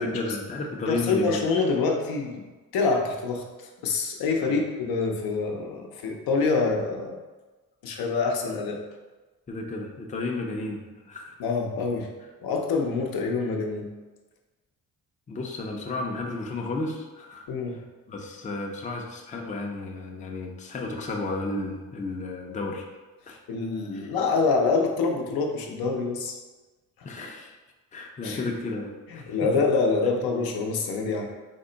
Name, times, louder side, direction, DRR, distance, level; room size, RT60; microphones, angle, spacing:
voice 1, 0.0-1.4 4.4-4.6 9.5-11.4 15.3-17.8 18.1-22.8 23.3-23.4 23.9-24.1 27.0-27.5 27.9-29.5, left 2 dB, 20° left, 1 dB, 0.4 m, -33 dB
voice 2, 0.9-2.4 2.7-7.2 7.8-8.8 11.4-12.1 12.4-13.9 17.5-17.8 23.5-26.4 28.2-28.5 29.1-31.3, left 4 dB, 80° left, 1 dB, 0.6 m, -26 dB
3.6 x 2.1 x 3.8 m, 1.2 s
cardioid pair, 100°, 36 cm